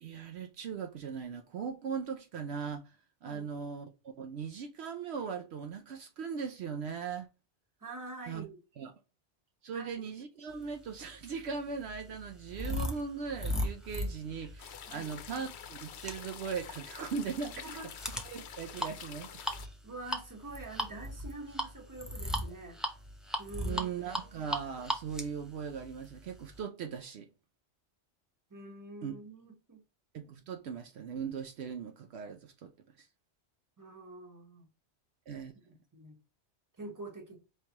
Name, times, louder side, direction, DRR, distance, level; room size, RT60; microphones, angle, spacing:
voice 1, 0.0-2.9 3.2-3.9 4.2-7.3 8.3-8.5 8.8-8.9 9.6-17.6 18.3-19.4 23.6-27.3 29.0-29.1 30.1-32.7 33.0-33.1 35.3-35.5, right 6 dB, 70° right, 0.8 m, -39 dB
voice 2, 7.8-8.6 9.7-10.0 14.9-15.1 17.6-17.9 19.8-22.8 23.4-23.9 24.2-24.3 28.5-29.8 33.8-34.7 35.5-36.2 36.8-37.4, right 2 dB, 15° right, 1.1 m, -46 dB
sound 1, 10.9-26.6, equal, ahead, 0.5 m, -38 dB
sound 2, 14.6-19.7, left 8 dB, 75° left, 0.9 m, -47 dB
4.7 x 3.3 x 2.9 m
omnidirectional pair, 1.2 m